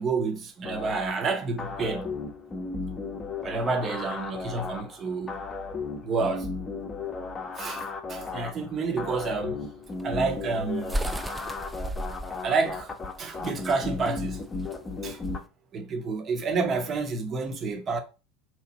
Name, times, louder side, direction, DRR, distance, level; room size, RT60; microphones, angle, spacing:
voice 1, 0.0-2.2 3.4-5.4 6.0-6.5 7.6-9.6 10.0-11.0 12.4-12.9 13.2-14.4 15.0-15.2 15.7-18.0, right 4 dB, 30° right, 0.7 m, -29 dB
sound 1, 0.6-15.4, left 4 dB, 25° left, 0.7 m, -35 dB
sound 2, 9.9-15.4, right 1 dB, 10° right, 0.4 m, -35 dB
3.0 x 2.5 x 4.1 m
figure-of-eight pair, 75°, 0 cm